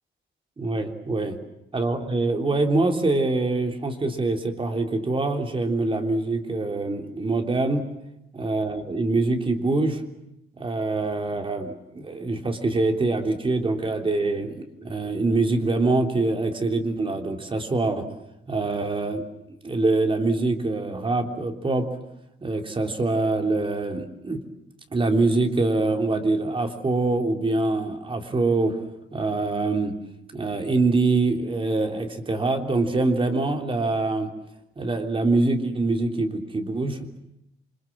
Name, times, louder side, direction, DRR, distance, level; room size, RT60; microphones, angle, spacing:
voice 1, 0.6-1.4 1.7-7.9 8.3-10.0 10.6-18.1 18.5-21.9 22.4-24.4 24.9-28.8 29.1-29.9 30.3-34.3 34.8-37.2, right 2 dB, 25° right, 4 dB, 3.4 m, -24 dB
28.5 x 25.0 x 7.6 m, 0.84 s
cardioid pair, 150°, 21 cm